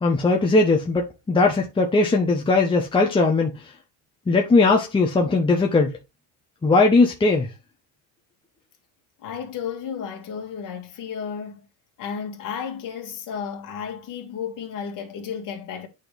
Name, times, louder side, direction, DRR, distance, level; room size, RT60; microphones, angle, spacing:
voice 1, 0.0-3.5 4.3-6.0 6.6-7.5, left 3 dB, 10° left, 1.1 m, -19 dB
voice 2, 9.2-11.7 12.0-15.9, left 7 dB, 45° left, 2.4 m, -33 dB
8.9 x 4.2 x 3.4 m
cardioid pair, 135°, 44 cm